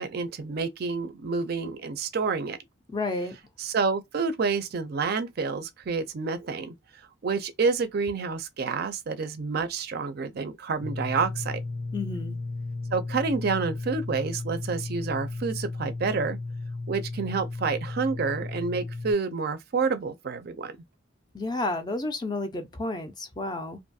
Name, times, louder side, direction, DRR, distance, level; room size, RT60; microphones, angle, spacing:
voice 1, 0.0-2.6 3.6-6.7 7.2-11.6 12.9-16.4 16.9-20.8, right 4 dB, 50° right, 0.4 m, -28 dB
voice 2, 2.9-3.4 11.9-12.4 21.3-23.8, left 2 dB, 20° left, 0.4 m, -31 dB
sound 1, 10.8-19.1, left 3 dB, 75° left, 0.9 m, -34 dB
2.5 x 2.3 x 2.6 m
head